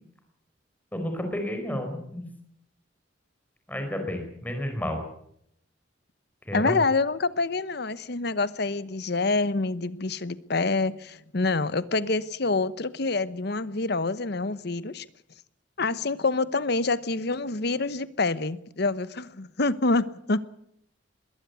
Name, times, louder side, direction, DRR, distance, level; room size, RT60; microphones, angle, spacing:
voice 1, 0.9-2.2 3.7-5.0 6.5-6.8, left 1 dB, 10° left, 5 dB, 4.9 m, -31 dB
voice 2, 6.5-15.0 15.8-20.4, left 3 dB, 60° left, 16 dB, 1.0 m, -26 dB
21.0 x 17.5 x 8.4 m, 0.73 s
head